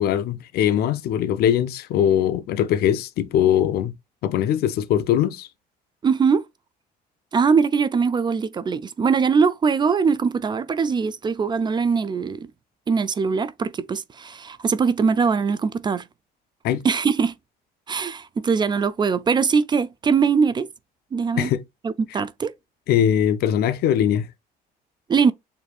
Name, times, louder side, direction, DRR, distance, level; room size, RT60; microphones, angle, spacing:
voice 1, 0.0-3.9 4.2-5.5 16.6-16.8 21.4-21.6 22.9-24.3, left 10 dB, 70° left, 0.5 m, -21 dB
voice 2, 6.0-6.5 7.3-12.5 12.9-16.1 16.8-17.3 17.9-20.7 21.1-21.5 21.8-22.5 25.1-25.3, right 5 dB, 25° right, 0.3 m, -21 dB
6.9 x 2.6 x 2.3 m
cardioid pair, 110°, 17 cm